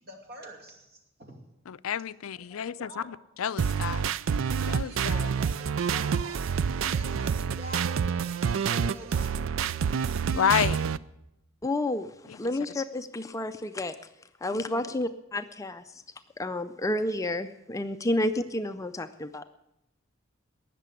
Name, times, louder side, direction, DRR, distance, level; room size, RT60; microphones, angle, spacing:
voice 1, 0.0-1.4 2.3-3.1 4.8-6.6 6.8-9.8 14.8-15.0, right 1 dB, 50° right, 3 dB, 2.7 m, -47 dB
voice 2, 1.7-4.1 4.4-5.3 10.3-10.8 12.3-12.5 14.5-14.6, left 8 dB, 90° left, 16 dB, 0.5 m, -30 dB
sound 1, 3.6-11.0, right 6 dB, 70° right, 0.4 m, -28 dB
voice 3, 11.6-14.0 14.4-16.0 16.4-19.4, left 1 dB, 15° left, 10 dB, 0.4 m, -30 dB
18.5 x 6.8 x 8.3 m, 0.88 s
head